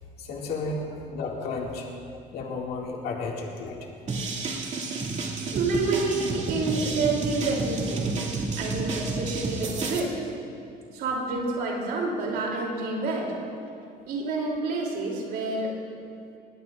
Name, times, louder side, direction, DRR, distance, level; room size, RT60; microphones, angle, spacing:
voice 1, 0.2-1.9 2.3-3.9, left 3 dB, 70° left, -1 dB, 2.2 m, -33 dB
sound 1, 4.1-10.0, right 3 dB, 45° right, 2.3 m, -30 dB
voice 2, 5.5-8.2 8.6-10.1 10.9-13.4 14.1-15.8, right 3 dB, 75° right, -2 dB, 3.1 m, -28 dB
21.5 x 18.5 x 2.5 m, 2.5 s
cardioid pair, 110°, 17 cm